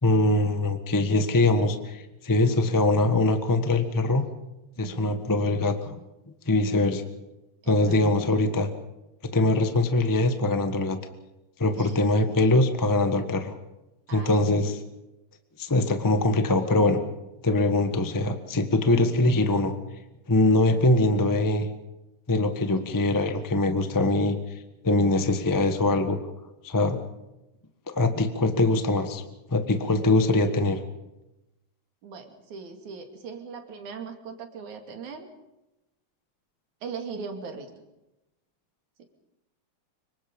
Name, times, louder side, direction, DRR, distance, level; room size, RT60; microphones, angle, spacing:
voice 1, 0.0-4.2 4.8-5.9 6.4-7.0 7.7-8.7 9.3-11.0 11.6-13.5 14.1-14.8 15.6-17.0 17.4-19.7 20.3-21.7 22.3-24.4 24.8-26.2 26.6-27.0 27.9-29.2 29.5-30.8, left 2 dB, 20° left, 7 dB, 0.5 m, -22 dB
voice 2, 4.8-5.2 7.6-8.0 11.8-12.2 14.1-14.7 22.7-22.8 23.3-23.4 32.0-35.3 36.8-37.7, right 5 dB, 75° right, 5 dB, 3.8 m, -40 dB
25.5 x 24.0 x 5.4 m, 0.95 s
omnidirectional pair, 3.4 m